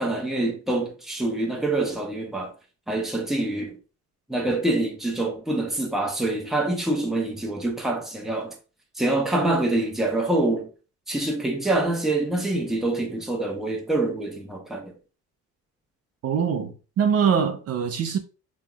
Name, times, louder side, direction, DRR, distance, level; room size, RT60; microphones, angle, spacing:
voice 1, 0.0-2.5 2.9-3.8 4.3-8.5 9.0-10.7 11.1-14.9, right 2 dB, ahead, 0.8 m, -25 dB
voice 2, 16.2-18.2, right 7 dB, 55° right, 0.5 m, -23 dB
5.4 x 3.0 x 2.3 m
cardioid pair, 155°, 30 cm